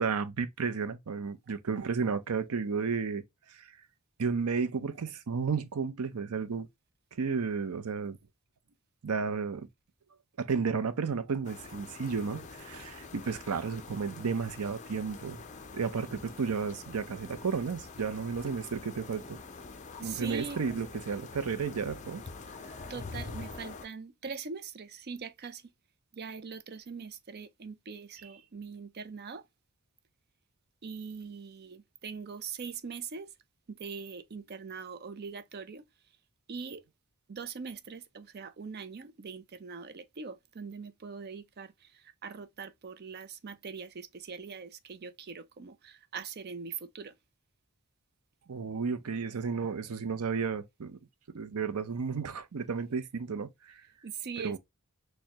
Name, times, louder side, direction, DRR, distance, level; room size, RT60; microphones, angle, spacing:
voice 1, 0.0-3.2 3.5-3.7 4.2-6.7 7.2-8.2 9.0-9.7 10.4-15.4 15.7-19.4 20.0-22.6 48.5-51.0 51.3-53.8 54.4-54.6, right 5 dB, 90° right, 0.6 m, -33 dB
sound 1, 11.4-23.9, left 4 dB, 35° left, 0.5 m, -46 dB
Musical instrument, 15.1-23.0, left 2 dB, 15° left, 3.2 m, -59 dB
voice 2, 20.0-20.6 22.9-25.6 26.1-29.4 30.8-33.3 33.7-35.8 36.5-36.8 37.3-47.1 54.0-54.6, right 5 dB, 45° right, 0.5 m, -42 dB
6.4 x 2.2 x 2.8 m
head